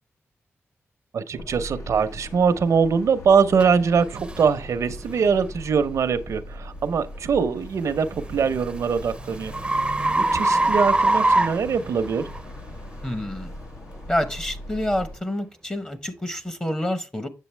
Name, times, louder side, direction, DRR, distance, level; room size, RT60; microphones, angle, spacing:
voice 1, 1.1-9.5 10.1-12.3, right 6 dB, 75° right, 0.7 m, -22 dB
sound 1, 1.3-15.2, left 1 dB, 70° left, 1.2 m, -40 dB
sound 2, 3.6-3.7 4.3-4.5 5.1-5.3 7.9-12.4, right 2 dB, 20° right, 0.6 m, -23 dB
voice 2, 13.0-13.5 14.1-17.3, left 1 dB, 20° left, 0.9 m, -28 dB
8.3 x 6.7 x 3.3 m
cardioid pair, 90°, 5 cm